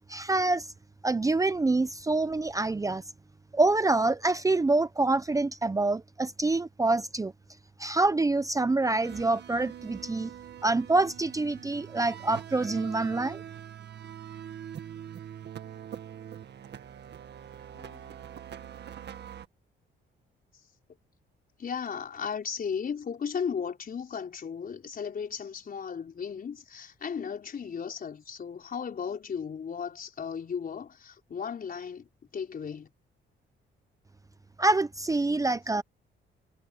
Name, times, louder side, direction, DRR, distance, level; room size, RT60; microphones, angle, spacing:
voice 1, 0.1-0.7 1.0-3.0 3.5-7.3 7.8-10.3 10.6-13.4 34.6-35.8, right 2 dB, 15° right, 0.8 m, -26 dB
sound 1, 9.0-19.5, right 9 dB, 60° right, 1.8 m, -43 dB
voice 2, 17.7-18.2 21.6-32.9, left 6 dB, 45° left, 4.5 m, -36 dB
cardioid pair, 90°, 20 cm